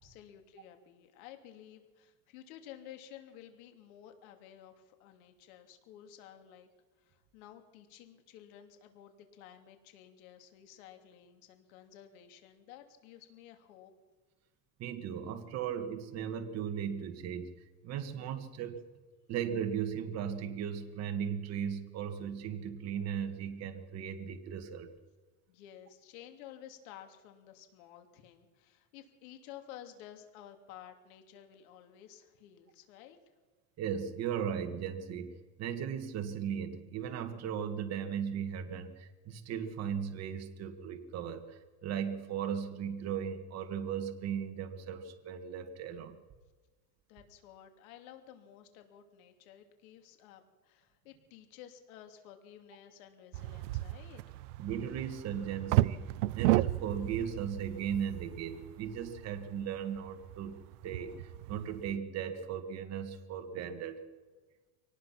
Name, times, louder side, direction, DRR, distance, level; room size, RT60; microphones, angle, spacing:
voice 1, 0.0-6.7 7.0-13.9 25.5-33.2 47.1-54.2, left 10 dB, 70° left, 6 dB, 3.0 m, -53 dB
voice 2, 14.8-17.5 17.8-18.8 19.3-24.9 33.8-35.3 35.6-46.2 54.6-60.6 60.8-61.1 61.5-64.0, right 8 dB, 35° right, 6 dB, 1.9 m, -37 dB
sound 1, 53.3-62.0, right 17 dB, 90° right, 0.7 m, -34 dB
23.5 x 19.0 x 5.9 m, 1.3 s
supercardioid pair, 150°, 43 cm